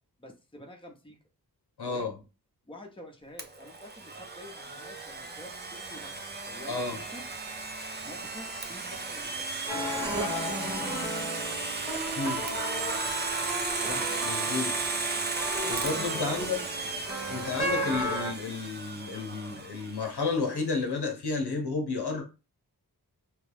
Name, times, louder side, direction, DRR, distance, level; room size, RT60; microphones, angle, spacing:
voice 1, 0.2-1.2 1.9-2.1 2.7-7.2 8.0-10.7 11.0-12.7 13.8-14.1 15.6-16.7, left 1 dB, 15° left, 0.8 m, -48 dB
voice 2, 1.8-2.1 6.7-7.0 12.2-12.4 13.9-14.8 15.7-16.6 17.3-22.2, left 4 dB, 80° left, 0.8 m, -32 dB
Domestic sounds home sounds, 3.4-20.2, right 3 dB, 25° right, 0.4 m, -35 dB
sound 1, 9.7-18.3, equal, 5° right, 1.1 m, -35 dB
3.1 x 2.3 x 3.3 m
wide cardioid pair, 55°, 39 cm